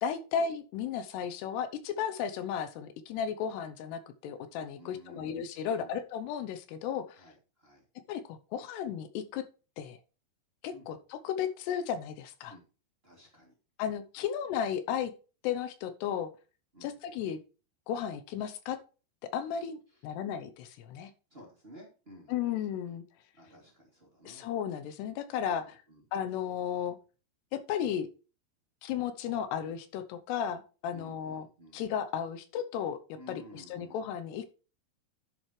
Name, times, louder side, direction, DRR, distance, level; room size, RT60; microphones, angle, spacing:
voice 1, 0.0-7.2 8.1-9.4 9.8-10.0 10.6-12.5 13.8-15.1 15.4-16.3 16.8-17.4 17.9-18.8 19.3-21.1 22.3-23.0 24.2-25.8 26.1-27.0 27.5-28.1 28.8-31.5 31.7-33.0 33.3-34.5, left 8 dB, 80° left, 10 dB, 2.9 m, -34 dB
voice 2, 4.8-5.3 5.7-6.0 7.1-7.8 10.7-10.9 12.5-12.6 13.0-13.6 13.8-14.3 16.7-16.9 19.9-20.1 21.3-23.0 23.3-24.5 25.4-26.0 30.9-31.8 33.2-34.0, equal, 15° right, -2 dB, 2.6 m, -54 dB
10.5 x 7.8 x 3.2 m, 0.35 s
omnidirectional pair, 4.8 m